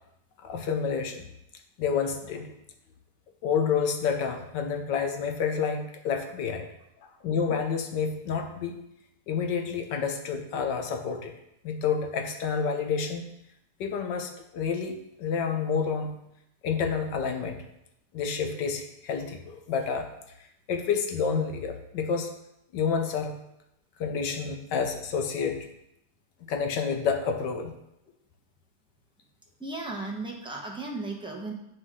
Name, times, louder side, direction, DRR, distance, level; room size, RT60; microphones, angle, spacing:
voice 1, 0.4-1.3 1.8-2.5 3.4-6.7 7.2-8.7 9.3-11.3 11.6-13.2 13.8-16.1 16.6-17.6 18.1-20.1 20.7-22.3 22.7-23.3 24.0-25.7 26.5-27.7, left 6 dB, 75° left, 5 dB, 1.4 m, -29 dB
voice 2, 29.6-31.5, right 2 dB, 5° right, -2 dB, 0.6 m, -35 dB
8.0 x 5.2 x 3.7 m, 0.82 s
omnidirectional pair, 1.9 m